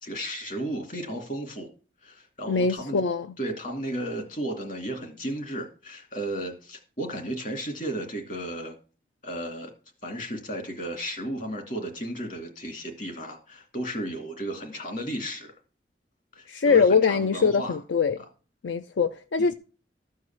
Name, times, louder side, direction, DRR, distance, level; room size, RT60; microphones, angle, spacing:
voice 1, 0.0-1.7 2.0-3.0 3.4-8.8 9.2-9.7 10.0-15.5 16.3-17.8 19.4-19.5, right 1 dB, 45° left, 2.5 m, -34 dB
voice 2, 2.5-3.3 16.5-18.2 18.6-19.5, left 5 dB, 80° left, 0.5 m, -23 dB
13.5 x 4.7 x 7.2 m
head